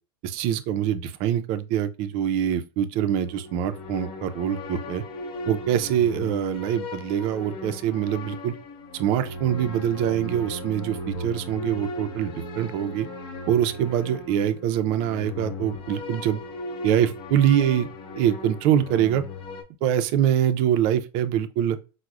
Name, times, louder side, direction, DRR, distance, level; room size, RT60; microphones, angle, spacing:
voice 1, 0.2-5.0 5.5-8.5 8.9-13.1 13.5-16.4 16.8-17.9 18.2-19.2 19.8-21.8, right 10 dB, 55° right, 0.4 m, -24 dB
sound 1, 3.2-19.6, left 2 dB, 40° left, 0.7 m, -37 dB
4.5 x 2.0 x 2.4 m
supercardioid pair, 120°, 12 cm